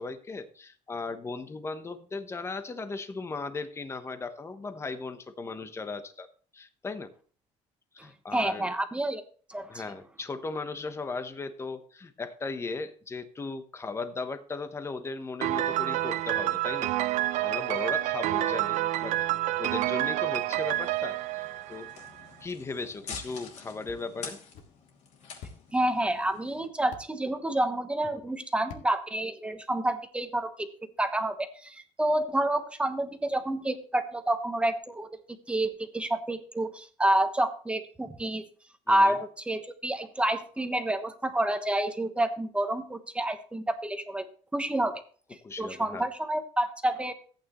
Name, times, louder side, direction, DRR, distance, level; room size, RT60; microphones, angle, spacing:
voice 1, 0.0-6.3 6.5-7.1 7.9-8.7 9.7-19.2 19.6-21.9 22.4-24.4 38.9-39.2 45.4-46.1, left 3 dB, 20° left, 10 dB, 1.0 m, -37 dB
voice 2, 8.3-9.2 9.5-9.8 25.7-30.7 31.0-35.2 35.5-38.4 38.9-44.3 44.5-45.0 45.6-47.1, right 1 dB, 10° right, 8 dB, 1.2 m, -28 dB
Piano, 15.4-22.2, right 15 dB, 65° right, 0.6 m, -28 dB
sound 1, 20.6-26.7, left 6 dB, 60° left, 2.7 m, -46 dB
sound 2, 23.1-23.3 23.9-24.0 24.5-24.7 25.4-25.6 26.9-27.1 28.7-28.9, left 5 dB, 75° left, 1.9 m, -44 dB
14.5 x 8.9 x 3.1 m, 0.42 s
cardioid pair, 120°, 13 cm